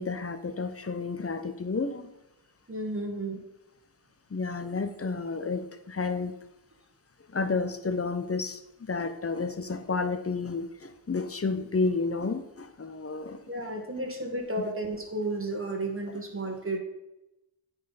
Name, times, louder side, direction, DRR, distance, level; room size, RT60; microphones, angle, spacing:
voice 1, 0.0-2.1 4.3-6.4 7.3-13.4, left 4 dB, 35° left, 10 dB, 0.7 m, -31 dB
voice 2, 2.7-3.4 13.5-16.8, right 2 dB, 30° right, 2 dB, 1.7 m, -32 dB
9.5 x 5.5 x 4.1 m, 0.93 s
wide cardioid pair, 70°, 43 cm